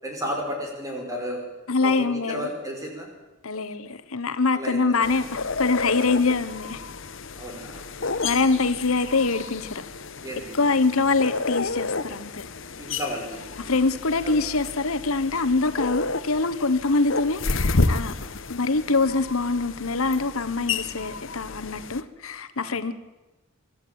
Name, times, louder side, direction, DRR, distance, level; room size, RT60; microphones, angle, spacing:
voice 1, 0.0-1.4 1.8-3.1 4.5-5.2 7.4-8.2 10.2-10.6 12.7-13.6 14.2-14.3 18.1-18.3 22.6-22.7, equal, 15° right, 1 dB, 5.4 m, -33 dB
voice 2, 1.7-2.5 3.4-6.8 8.2-9.8 10.5-12.4 13.6-18.1 18.5-22.9, left 3 dB, 85° left, 11 dB, 1.3 m, -24 dB
sound 1, 5.0-22.0, left 3 dB, 60° left, 1.1 m, -31 dB
24.0 x 13.5 x 8.8 m, 1.1 s
head